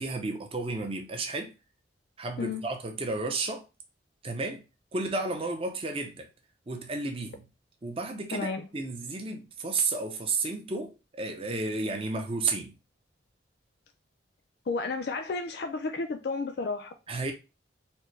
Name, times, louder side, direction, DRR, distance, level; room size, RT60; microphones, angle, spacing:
voice 1, 0.0-1.5 2.2-3.6 4.2-4.6 4.9-6.3 6.7-7.4 7.8-8.5 8.7-12.7 17.1-17.3, right 3 dB, 30° right, 0.6 m, -32 dB
voice 2, 8.3-8.7 14.7-16.9, left 3 dB, 55° left, 0.4 m, -32 dB
4.2 x 2.1 x 3.2 m
head